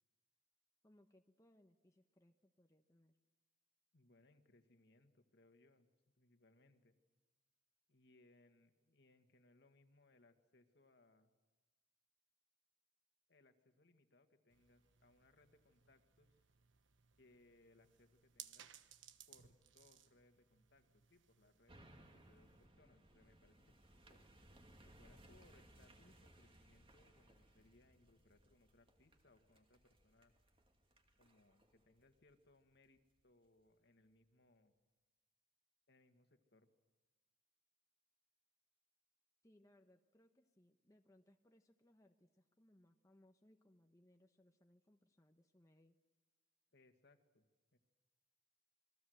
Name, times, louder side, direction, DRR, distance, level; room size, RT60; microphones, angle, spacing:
voice 1, 0.8-3.2 39.4-46.0, left 1 dB, 15° left, 5 dB, 1.0 m, -70 dB
voice 2, 3.9-5.9 6.2-7.0 7.9-11.3 13.3-16.3 17.2-18.7 19.3-23.7 24.1-24.2 24.8-30.3 31.2-34.7 35.9-36.7 46.7-47.4 47.7-47.8, left 2 dB, 60° left, 7 dB, 1.8 m, -71 dB
sound 1, 14.5-22.7, right 10 dB, 85° right, 1.2 m, -63 dB
sound 2, 21.7-33.1 33.6-33.7, right 1 dB, 30° right, 2.3 m, -66 dB
27.5 x 22.5 x 7.9 m, 1.2 s
head